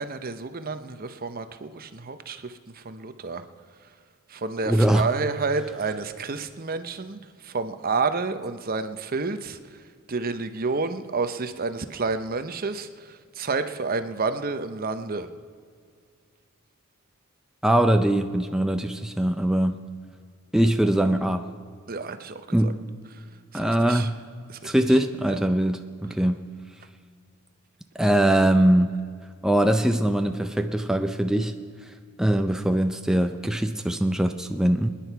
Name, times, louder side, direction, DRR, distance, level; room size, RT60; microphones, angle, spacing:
voice 1, 0.0-3.4 4.3-9.6 10.1-15.3 21.9-22.7 23.5-24.1 24.5-24.7 25.3-25.4, right 4 dB, 40° right, 10 dB, 0.7 m, -30 dB
voice 2, 4.7-5.1 17.6-19.8 20.5-21.5 22.5-22.8 23.5-24.2 24.6-26.5 28.0-29.0 29.4-31.5 32.2-34.9, right 1 dB, ahead, 6 dB, 0.4 m, -22 dB
27.0 x 10.0 x 4.6 m, 2.1 s
head